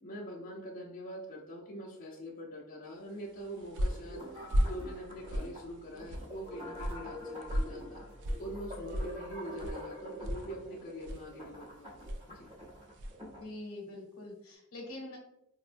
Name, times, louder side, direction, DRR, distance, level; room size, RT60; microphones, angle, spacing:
voice 1, 0.0-8.1 8.4-12.5, equal, 35° left, -5 dB, 0.5 m, -44 dB
sound 1, 3.2-13.3, equal, 55° right, 0.3 m, -37 dB
sound 2, 3.9-13.5, equal, 25° right, 0.8 m, -46 dB
voice 2, 13.2-15.2, left 2 dB, 70° left, 1 dB, 0.8 m, -44 dB
4.1 x 2.1 x 2.5 m, 0.79 s
head